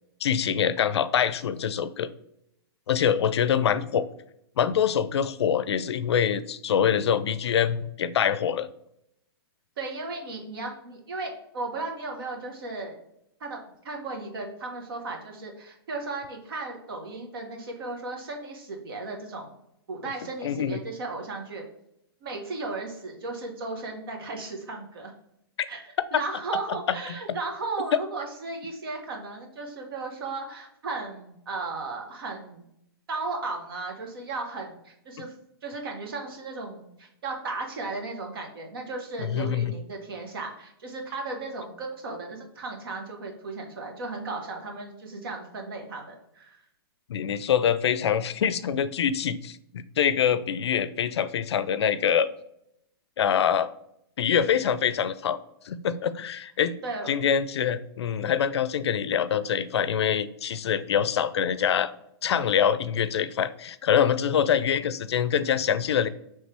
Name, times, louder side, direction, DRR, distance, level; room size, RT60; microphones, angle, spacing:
voice 1, 0.2-2.1 2.9-4.1 4.6-8.7 20.4-20.8 26.9-27.0 39.2-39.7 47.1-52.3 53.2-53.7 54.2-55.4 55.6-56.8 57.1-61.9 62.2-66.1, left 8 dB, 90° left, 14 dB, 0.4 m, -25 dB
voice 2, 9.8-13.0 13.4-13.6 13.8-19.5 19.9-21.6 22.2-25.1 25.7-32.6 33.1-35.3 35.6-46.6 56.8-57.1, right 3 dB, 60° right, 2 dB, 1.1 m, -35 dB
3.3 x 3.2 x 4.3 m, 0.77 s
hypercardioid pair, 165°, 13 cm